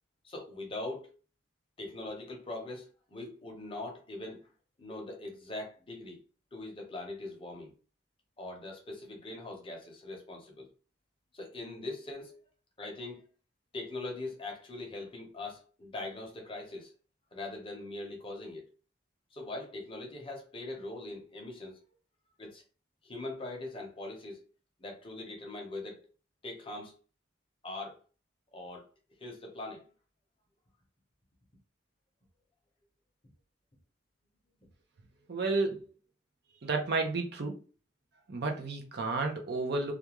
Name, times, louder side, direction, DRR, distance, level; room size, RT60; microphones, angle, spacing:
voice 1, 0.2-1.2 1.8-4.5 4.8-6.2 6.5-7.7 8.4-10.7 11.3-12.5 12.8-13.2 13.7-16.9 17.3-18.7 19.3-21.8 22.4-22.6 23.0-24.4 24.8-26.1 26.4-27.0 27.6-28.0 28.5-28.9 29.2-29.8, left 2 dB, 25° left, 0.7 m, -41 dB
voice 2, 35.3-35.8 36.6-37.6 38.3-39.9, right 3 dB, 55° right, 0.6 m, -31 dB
2.4 x 2.3 x 2.9 m
head